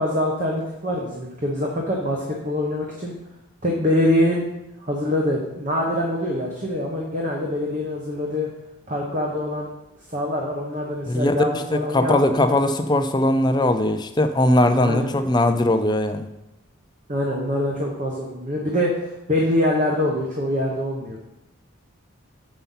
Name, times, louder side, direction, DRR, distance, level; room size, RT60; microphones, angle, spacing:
voice 1, 0.0-3.1 3.6-4.4 4.8-8.5 8.9-9.7 10.1-12.6 14.8-15.1 17.1-21.2, left 1 dB, 35° right, -2 dB, 1.1 m, -24 dB
voice 2, 11.7-16.3, left 1 dB, 20° left, 8 dB, 0.4 m, -20 dB
6.9 x 5.6 x 5.6 m, 0.90 s
head